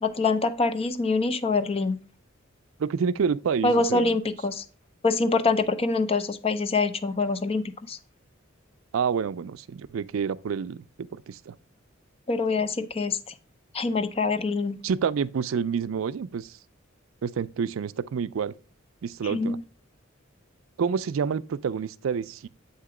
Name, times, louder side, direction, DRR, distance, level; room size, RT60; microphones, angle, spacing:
voice 1, 0.0-2.0 3.6-4.6 5.0-8.0 12.3-13.3 13.7-14.8 19.2-19.6, left 3 dB, 30° left, 0.5 m, -25 dB
voice 2, 2.8-4.2 8.9-11.6 14.8-16.6 17.2-18.5 19.0-19.6 20.8-22.5, right 6 dB, 80° right, 0.4 m, -28 dB
8.4 x 2.9 x 4.8 m
head